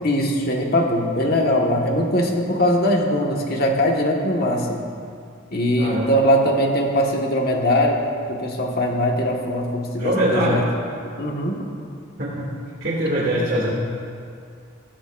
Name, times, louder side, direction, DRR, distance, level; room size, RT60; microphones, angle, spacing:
voice 1, 0.0-4.8 5.5-8.0 8.3-10.6 11.2-11.6, equal, 45° left, 0 dB, 1.6 m, -21 dB
voice 2, 5.8-6.1 10.0-10.7 12.2-12.5 12.8-13.7, right 1 dB, 45° right, -8 dB, 2.4 m, -22 dB
17.0 x 15.5 x 2.6 m, 2.3 s
head